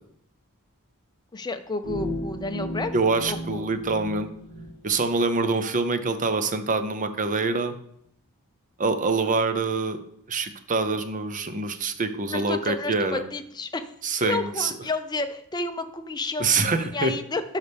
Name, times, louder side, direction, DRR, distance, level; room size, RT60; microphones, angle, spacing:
voice 1, 1.3-2.9 3.3-3.7 12.3-13.9 14.2-17.4, left 3 dB, 20° left, 7 dB, 0.6 m, -31 dB
sound 1, 1.8-4.7, left 1 dB, 55° right, 3.2 m, -34 dB
voice 2, 2.9-4.3 4.8-7.7 8.8-10.0 10.3-13.2 14.0-14.7 16.4-17.1, right 3 dB, 35° right, 9 dB, 0.7 m, -25 dB
10.5 x 5.7 x 3.4 m, 0.71 s
head